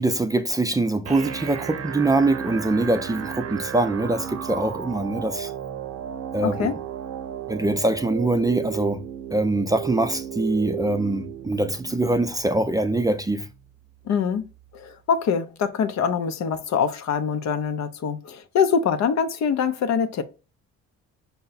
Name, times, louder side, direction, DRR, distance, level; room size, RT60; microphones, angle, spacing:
voice 1, 0.0-5.5 6.3-6.7 7.5-9.0 9.3-13.5, right 2 dB, 10° right, 0.4 m, -23 dB
sound 1, 1.1-15.0, right 10 dB, 55° right, 0.7 m, -35 dB
voice 2, 6.4-6.8 14.0-14.5 14.7-20.2, left 6 dB, 65° left, 0.6 m, -24 dB
5.6 x 2.2 x 3.9 m
cardioid pair, 90°, 30 cm